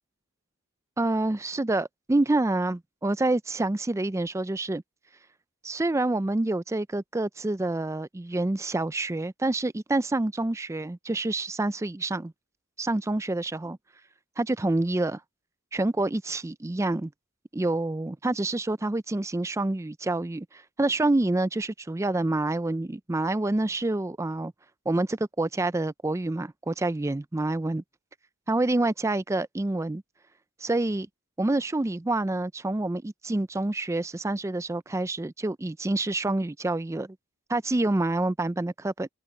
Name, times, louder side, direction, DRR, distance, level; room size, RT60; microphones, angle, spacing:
voice 1, 1.0-4.8 5.6-12.3 12.8-13.8 14.4-15.2 15.7-17.1 17.5-24.5 24.9-27.8 28.5-30.0 30.6-31.1 31.4-37.2 37.5-39.1, right 2 dB, 15° right, 0.3 m, -27 dB
head